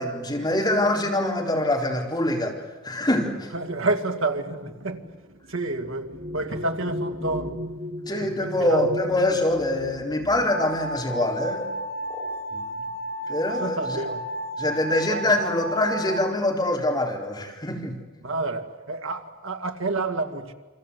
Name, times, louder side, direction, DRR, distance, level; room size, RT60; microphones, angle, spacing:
voice 1, 0.0-2.6 2.8-3.5 8.1-11.6 12.5-12.6 13.3-14.0 14.6-18.0, left 1 dB, 20° left, 4.2 m, -24 dB
sound 1, 3.4-12.3 13.3-13.4 13.8-14.3, equal, 45° right, 2.2 m, -37 dB
voice 2, 3.5-5.0 5.5-7.6 8.1-8.9 13.5-14.3 15.1-15.4 18.2-20.5, right 2 dB, 65° right, 2.4 m, -29 dB
sound 2, 9.5-9.7 10.3-10.5 11.0-11.3 12.1-12.3 13.1-13.2 13.9-14.4 15.0-15.2, right 1 dB, 25° right, 5.4 m, -42 dB
sound 3, 10.5-16.2, equal, 85° left, 6.7 m, -33 dB
29.0 x 24.5 x 8.3 m
head